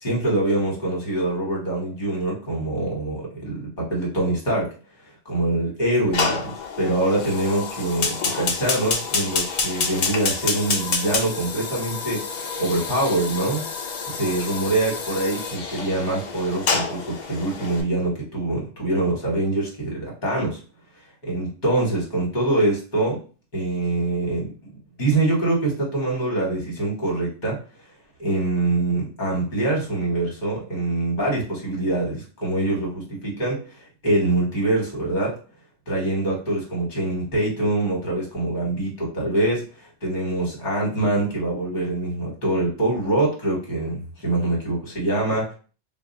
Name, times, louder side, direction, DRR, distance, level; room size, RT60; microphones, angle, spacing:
voice 1, 0.0-4.7 5.2-13.6 14.1-20.6 21.2-23.2 23.5-24.5 25.0-27.6 28.2-35.4 35.9-45.5, right 2 dB, 40° left, -3 dB, 1.4 m, -24 dB
Fire, 6.1-17.8, left 4 dB, 55° left, 0.5 m, -28 dB
2.5 x 2.3 x 3.8 m, 0.37 s
omnidirectional pair, 1.2 m